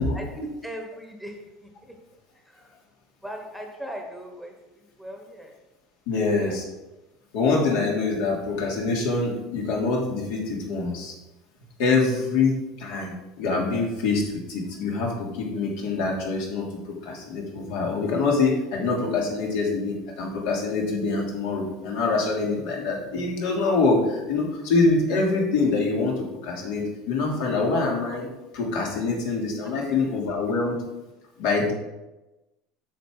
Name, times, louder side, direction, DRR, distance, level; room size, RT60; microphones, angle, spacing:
voice 1, 0.1-1.9 2.3-2.8 3.2-5.6 6.1-6.6 29.6-29.7, equal, ahead, 3 dB, 1.2 m, -39 dB
voice 2, 6.1-6.6 7.3-11.1 11.8-28.3 28.5-30.8 31.4-31.7, left 3 dB, 70° left, -1 dB, 3.0 m, -25 dB
9.1 x 7.1 x 4.9 m, 1.0 s
cardioid pair, 155°, 0 cm